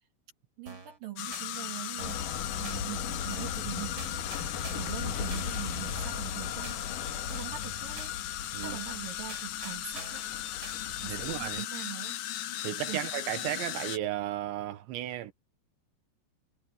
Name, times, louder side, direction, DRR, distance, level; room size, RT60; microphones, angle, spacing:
voice 1, 0.6-2.2 2.6-4.2 4.7-6.8 7.3-8.1 8.6-10.3 11.0-12.2 12.9-13.0, right 13 dB, 55° right, 4.1 m, -42 dB
sound 1, 0.7-1.0 1.3-1.5 2.0-2.3 2.6-2.8 3.3-3.6 4.0-5.0 5.3-5.5 6.0-6.3 6.6-6.8 7.3-7.6 8.0-8.1 8.6-8.9 9.3-10.3 10.6-10.8, right 3 dB, 25° right, 4.3 m, -46 dB
sound 2, 1.2-14.0, left 13 dB, 80° left, 1.8 m, -37 dB
sound 3, 2.0-11.6, left 7 dB, 55° left, 2.9 m, -39 dB
voice 2, 11.1-11.6 12.6-15.3, right 13 dB, 80° right, 3.6 m, -34 dB
omnidirectional pair, 5.2 m